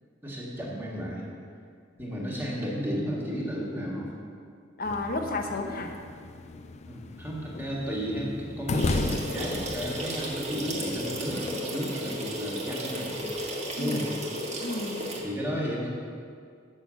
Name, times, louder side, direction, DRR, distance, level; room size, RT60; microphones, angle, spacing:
voice 1, 0.2-1.3 2.0-4.1 6.8-13.2 13.8-14.1 15.2-15.9, equal, 10° right, -5 dB, 1.7 m, -33 dB
voice 2, 4.8-5.9 13.8-14.1 14.6-15.2, left 2 dB, 50° left, 4 dB, 0.9 m, -32 dB
sound 1, 4.8-11.5, left 3 dB, 35° left, 0.4 m, -35 dB
sound 2, 8.8-15.2, equal, 35° right, 1.4 m, -34 dB
6.7 x 6.2 x 7.5 m, 2.2 s
head